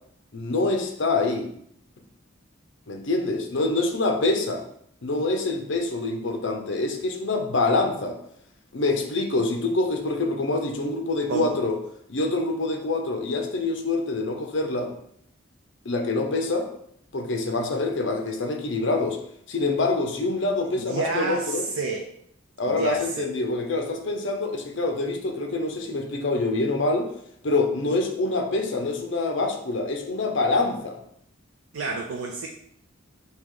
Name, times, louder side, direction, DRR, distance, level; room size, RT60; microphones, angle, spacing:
voice 1, 0.3-1.5 2.9-4.6 5.0-8.2 8.7-11.8 12.1-14.9 15.8-16.7 17.1-19.2 19.5-21.6 22.6-27.1 27.4-31.0, left 2 dB, 60° left, 4 dB, 0.7 m, -25 dB
voice 2, 20.6-22.1 22.7-23.3 31.7-32.5, right 3 dB, 80° right, 2 dB, 0.5 m, -30 dB
4.7 x 2.9 x 3.7 m, 0.71 s
head